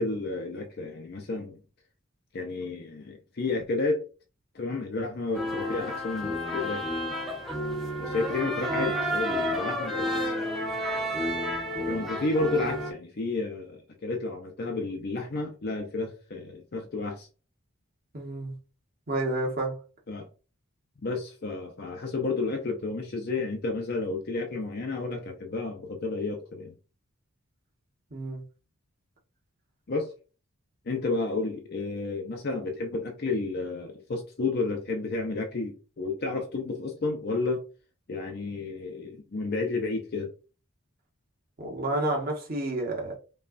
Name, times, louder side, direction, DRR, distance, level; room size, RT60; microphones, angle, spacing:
voice 1, 0.0-1.6 2.3-4.1 4.5-6.8 8.0-10.3 11.8-17.3 20.1-20.3 21.0-26.7 29.9-30.1 30.9-37.6 38.1-40.3, left 3 dB, 45° left, 0.5 m, -31 dB
sound 1, 5.3-12.9, equal, ahead, 0.7 m, -30 dB
voice 2, 18.1-18.5 19.1-19.8 28.1-28.4 41.6-43.2, right 2 dB, 45° right, 1.1 m, -30 dB
5.3 x 2.3 x 2.5 m
head